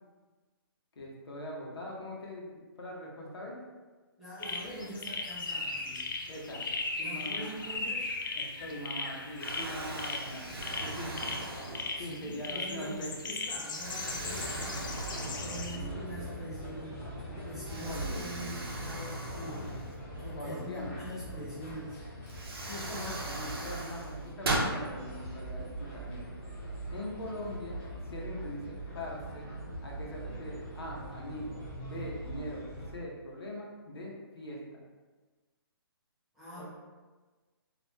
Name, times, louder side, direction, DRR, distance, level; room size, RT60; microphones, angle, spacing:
voice 1, 1.0-3.5 6.3-6.7 7.0-7.8 8.3-10.5 10.8-11.1 12.0-13.1 14.3-14.4 15.6-15.9 17.9-18.6 20.4-21.0 22.7-26.3 26.9-29.5 29.8-34.8 36.6-36.7, left 1 dB, 85° left, -3 dB, 0.8 m, -42 dB
voice 2, 4.2-6.1 7.0-8.1 11.9-14.8 15.2-17.1 17.4-19.7 20.2-22.1 36.3-36.7, right 1 dB, 5° right, -12 dB, 0.5 m, -44 dB
sound 1, 4.4-15.8, left 3 dB, 55° left, 0.4 m, -38 dB
Explosion, 8.7-9.1 9.4-12.2 12.8-13.0 13.7-16.0 16.3-16.4 17.6-20.3 21.7-21.8 22.3-24.8, right 2 dB, 70° right, 0.6 m, -38 dB
sound 2, 14.1-32.9, right 1 dB, 35° left, 0.9 m, -42 dB
2.4 x 2.1 x 3.0 m, 1.3 s
hypercardioid pair, 160°, 13 cm